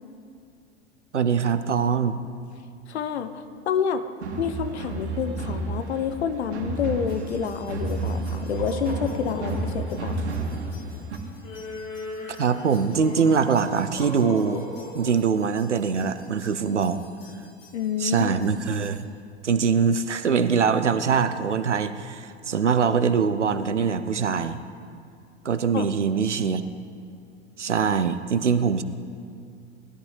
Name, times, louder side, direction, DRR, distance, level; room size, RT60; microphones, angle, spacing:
voice 1, 1.1-2.2 12.4-14.7 14.9-17.0 18.0-19.1 19.4-24.6 25.4-26.6 27.6-28.8, right 6 dB, 85° right, 11 dB, 0.7 m, -23 dB
voice 2, 2.9-4.0 4.4-10.2 17.7-18.3 25.7-25.8, left 7 dB, 70° left, 10 dB, 1.0 m, -28 dB
sound 1, 4.2-11.2, right 3 dB, 70° right, 1.9 m, -31 dB
sound 2, 7.1-19.0, left 2 dB, 45° left, 3.5 m, -41 dB
20.0 x 13.0 x 3.3 m, 2.4 s
figure-of-eight pair, 85°, 34 cm